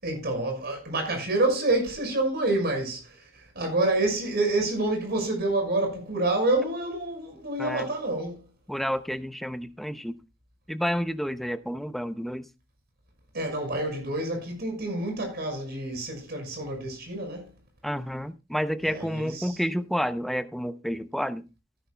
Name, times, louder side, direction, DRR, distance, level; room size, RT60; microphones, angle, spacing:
voice 1, 0.0-8.4 13.3-17.5 18.9-19.6, right 2 dB, 55° right, 5.8 m, -28 dB
voice 2, 8.7-10.2 10.7-12.4 17.8-21.4, equal, ahead, 0.7 m, -30 dB
17.0 x 10.5 x 2.3 m
head